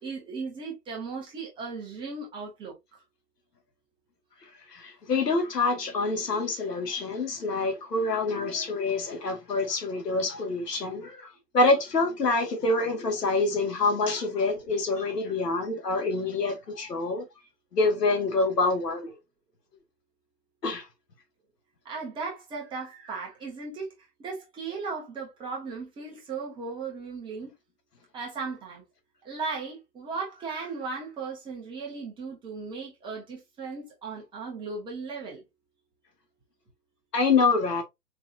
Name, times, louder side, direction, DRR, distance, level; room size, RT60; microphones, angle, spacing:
voice 1, 0.0-2.7 21.8-23.9 24.2-27.5 28.1-28.8 29.2-35.4, right 4 dB, 10° right, 1.0 m, -36 dB
voice 2, 4.7-11.3 11.5-17.2 17.7-19.1 20.6-20.8 37.1-37.8, left 3 dB, 75° left, 2.0 m, -26 dB
4.8 x 3.6 x 2.6 m
hypercardioid pair, 135°, 49 cm